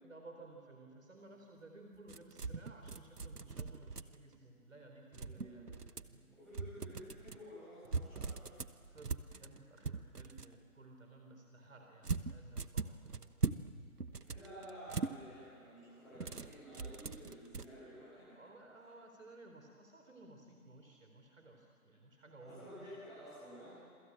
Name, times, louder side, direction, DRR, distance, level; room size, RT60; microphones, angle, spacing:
voice 1, 0.0-6.3 8.9-13.5 18.3-23.0, right 2 dB, 55° right, 3 dB, 3.9 m, -57 dB
sound 1, 2.1-4.4 5.1-6.2 6.5-7.4 7.9-10.5 12.0-13.7 14.0-15.1 16.2-17.7, right 4 dB, 90° right, 1.2 m, -40 dB
voice 2, 5.1-5.7 6.3-8.5 14.2-18.4 22.4-23.8, equal, ahead, -15 dB, 6.8 m, -52 dB
27.0 x 24.0 x 8.7 m, 2.3 s
figure-of-eight pair, 160°, 45 cm